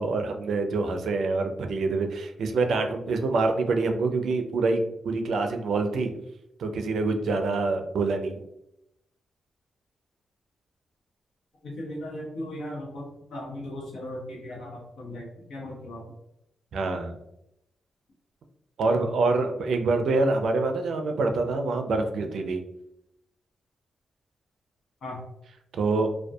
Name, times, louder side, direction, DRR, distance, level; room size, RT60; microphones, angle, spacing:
voice 1, 0.0-6.1 6.6-8.4 16.7-17.1 18.8-22.6 25.7-26.1, right 3 dB, 75° right, 6 dB, 0.3 m, -26 dB
voice 2, 11.6-16.0 25.0-25.2, left 1 dB, 85° left, -3 dB, 0.9 m, -37 dB
2.6 x 2.2 x 2.2 m, 0.83 s
cardioid pair, 85°, 0 cm